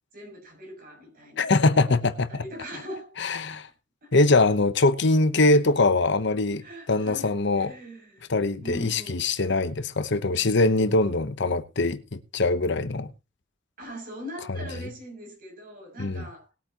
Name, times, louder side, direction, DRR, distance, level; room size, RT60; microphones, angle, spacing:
voice 1, 0.1-1.5 2.3-3.2 3.5-3.6 4.0-4.2 6.6-8.2 8.6-9.3 13.8-16.5, equal, 50° right, 6.8 m, -41 dB
voice 2, 1.4-2.4 3.2-3.7 4.1-7.7 8.3-13.1 14.5-14.6 16.0-16.3, left 2 dB, 65° left, 1.0 m, -23 dB
20.5 x 8.6 x 3.0 m
head